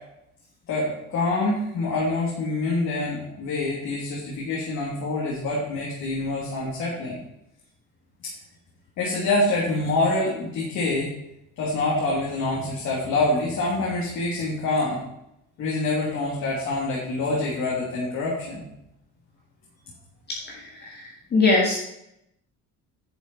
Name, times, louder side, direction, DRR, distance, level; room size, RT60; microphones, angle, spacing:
voice 1, 0.7-7.2 9.0-11.1 11.6-15.0 15.6-18.6, left 2 dB, 65° left, -5 dB, 3.0 m, -26 dB
voice 2, 20.3-21.8, left 3 dB, 35° left, -2 dB, 1.9 m, -23 dB
10.5 x 7.2 x 4.5 m, 0.81 s
cardioid pair, 145°, 31 cm